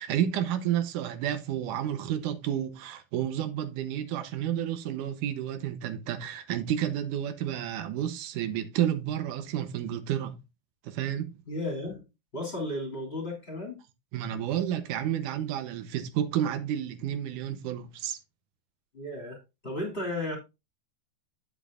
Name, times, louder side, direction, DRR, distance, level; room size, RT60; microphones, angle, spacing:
voice 1, 0.0-10.4 10.8-11.3 14.1-18.2, right 10 dB, 90° right, 2.4 m, -31 dB
voice 2, 11.5-12.0 12.3-13.8 18.9-19.4 19.6-20.4, left 1 dB, 20° left, 2.8 m, -34 dB
9.2 x 7.8 x 2.5 m
omnidirectional pair, 3.6 m